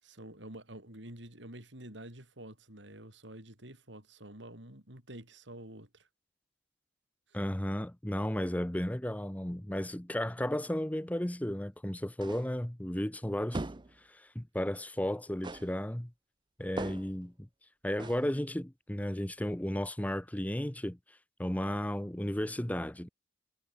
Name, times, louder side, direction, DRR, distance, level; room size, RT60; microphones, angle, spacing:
voice 1, 0.0-6.1 7.3-7.4, right 1 dB, 65° right, 7.4 m, -48 dB
voice 2, 7.3-13.6 14.1-16.1 16.6-17.5 17.8-21.0 21.4-23.1, left 1 dB, 10° left, 0.8 m, -34 dB
sound 1, 12.2-12.6 13.5-14.0 15.4-15.8 16.8-17.2 18.0-18.3, right 2 dB, 25° right, 0.6 m, -40 dB
head